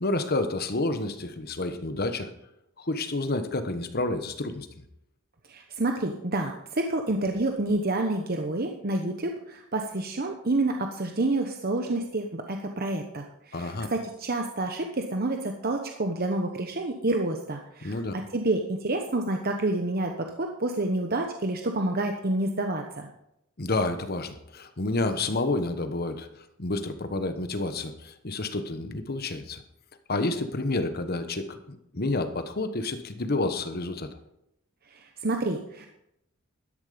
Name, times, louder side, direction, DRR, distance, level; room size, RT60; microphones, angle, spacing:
voice 1, 0.0-2.3 2.8-4.7 13.5-13.9 17.8-18.1 23.6-26.3 26.6-29.6 30.1-34.1, left 2 dB, 45° left, 9 dB, 1.2 m, -29 dB
voice 2, 5.5-23.1 34.9-35.9, right 2 dB, 45° right, 4 dB, 1.0 m, -28 dB
12.5 x 11.0 x 5.1 m, 0.82 s
head